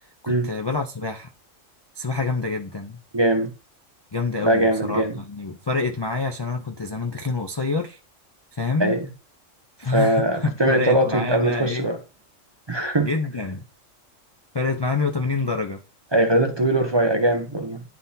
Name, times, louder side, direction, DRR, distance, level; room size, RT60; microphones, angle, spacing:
voice 1, 0.2-1.3 2.0-3.0 4.1-8.0 8.5-9.0 9.8-11.9 13.0-13.6 14.5-15.8, left 3 dB, 45° left, 0.3 m, -27 dB
voice 2, 3.1-3.5 4.4-5.2 8.8-9.1 9.9-12.0 12.7-13.1 16.1-17.8, right 1 dB, 30° right, 0.5 m, -21 dB
10.5 x 3.8 x 2.7 m
omnidirectional pair, 1.4 m